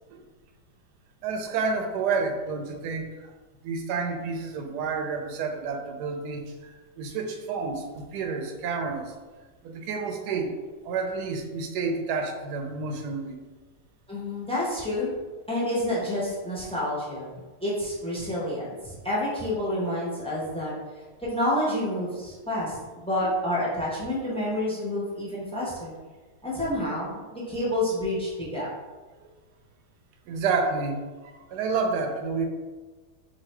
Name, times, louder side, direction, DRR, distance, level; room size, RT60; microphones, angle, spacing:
voice 1, 1.2-3.3 3.6-9.1 9.6-10.5 10.8-13.4 23.2-23.3 30.3-32.5, right 4 dB, 75° right, 4 dB, 1.1 m, -30 dB
voice 2, 14.1-15.1 15.5-17.3 17.6-20.7 21.2-25.9 26.4-28.7, left 1 dB, 5° left, -7 dB, 0.6 m, -29 dB
2.9 x 2.6 x 4.3 m, 1.3 s
omnidirectional pair, 1.8 m